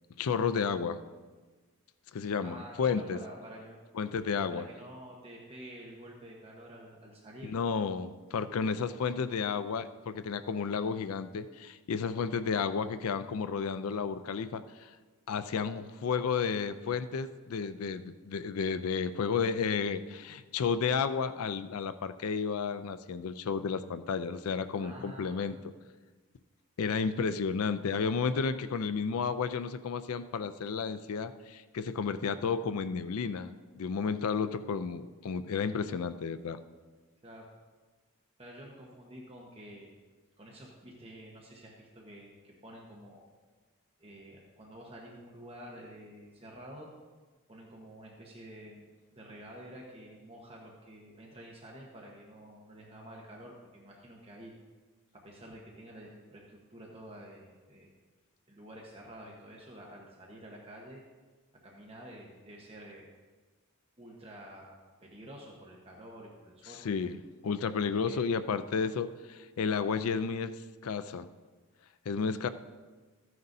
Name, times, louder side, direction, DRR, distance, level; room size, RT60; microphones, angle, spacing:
voice 1, 0.2-1.0 2.1-3.2 3.9-4.7 7.4-14.9 15.3-25.6 26.8-36.6 66.8-67.2 67.4-70.6 70.8-71.3 72.1-72.5, left 5 dB, 70° left, 12 dB, 0.4 m, -32 dB
voice 2, 2.4-3.8 4.5-7.5 24.7-25.5 27.1-27.3 37.2-37.5 38.4-40.0 40.4-43.2 44.0-46.9 47.5-48.8 49.1-54.5 55.1-57.9 58.5-61.0 61.6-63.1 64.0-66.8 68.0-68.2, right 1 dB, 25° right, -2 dB, 1.1 m, -49 dB
14.0 x 9.4 x 2.7 m, 1.4 s
head